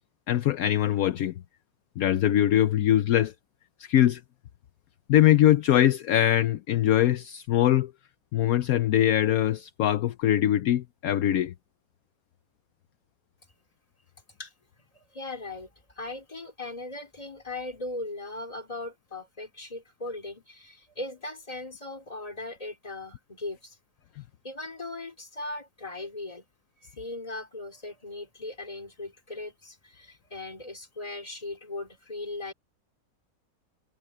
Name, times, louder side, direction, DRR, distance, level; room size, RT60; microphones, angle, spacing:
voice 1, 0.3-1.3 2.0-3.3 3.8-4.2 5.1-7.9 8.3-11.5, left 12 dB, 70° left, 1.1 m, -22 dB
voice 2, 14.9-23.8 24.4-26.4 26.8-32.5, left 2 dB, 20° left, 2.9 m, -38 dB
omnidirectional pair, 1.7 m